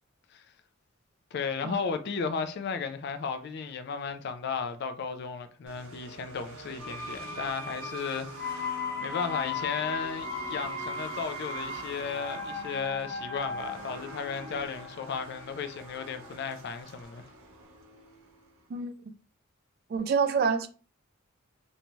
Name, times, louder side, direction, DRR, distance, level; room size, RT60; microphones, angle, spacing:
voice 1, 1.3-8.7 9.0-17.2, left 5 dB, 50° left, 0.3 m, -34 dB
sound 1, 5.7-18.7, right 3 dB, 90° right, 0.7 m, -46 dB
sound 2, 6.8-16.5 16.8-16.9, left 4 dB, 10° left, 0.7 m, -37 dB
voice 2, 19.9-20.7, right 5 dB, 45° right, 0.3 m, -26 dB
2.6 x 2.2 x 3.0 m
head